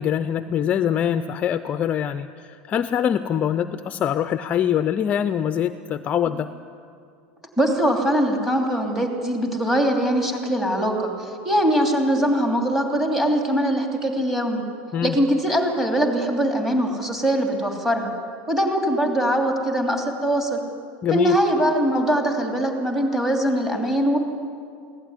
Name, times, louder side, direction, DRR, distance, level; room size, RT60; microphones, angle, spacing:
voice 1, 0.0-6.5 14.9-15.2 21.0-21.4, left 9 dB, 25° left, 12 dB, 0.5 m, -24 dB
voice 2, 7.6-14.6 15.0-18.1 18.5-20.6 21.1-24.2, equal, 5° right, 2 dB, 2.9 m, -22 dB
23.0 x 17.0 x 9.7 m, 2.4 s
supercardioid pair, 160°, 6 cm